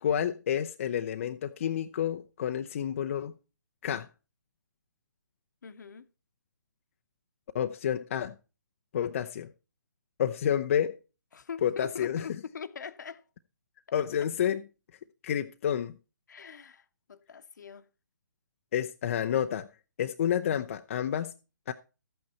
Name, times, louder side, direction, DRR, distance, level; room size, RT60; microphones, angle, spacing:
voice 1, 0.0-3.3 3.8-4.1 7.5-8.3 8.9-9.5 10.2-11.0 11.6-12.2 13.9-14.6 15.2-16.0 18.7-19.7 20.0-21.3 21.7-21.8, left 9 dB, 45° left, 0.6 m, -29 dB
voice 2, 5.6-6.1 11.3-13.2 16.3-17.9, left 6 dB, 65° left, 1.1 m, -42 dB
12.5 x 8.8 x 4.2 m
figure-of-eight pair, 145°, 10 cm